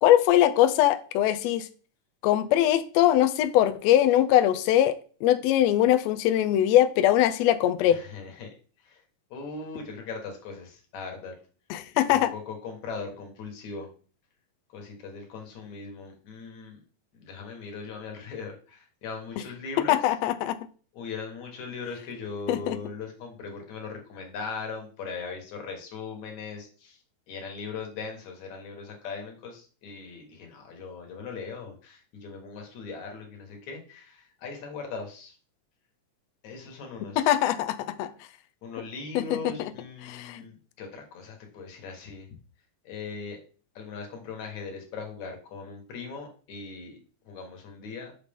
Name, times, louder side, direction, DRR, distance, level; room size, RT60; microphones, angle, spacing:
voice 1, 0.0-1.7 2.2-4.9 5.2-8.0 11.7-12.3 19.9-20.6 22.5-22.8 37.2-38.1 39.1-39.7 40.0-40.4, left 12 dB, 85° left, 10 dB, 1.5 m, -22 dB
voice 2, 7.9-8.5 8.8-9.0 9.3-11.3 12.1-13.9 14.7-16.8 17.1-20.0 20.9-27.0 27.3-35.3 36.4-37.3 38.6-42.3 42.8-43.4 43.8-47.0 47.2-48.1, left 4 dB, 70° left, 2 dB, 2.8 m, -39 dB
6.7 x 6.2 x 3.6 m, 0.40 s
omnidirectional pair, 3.6 m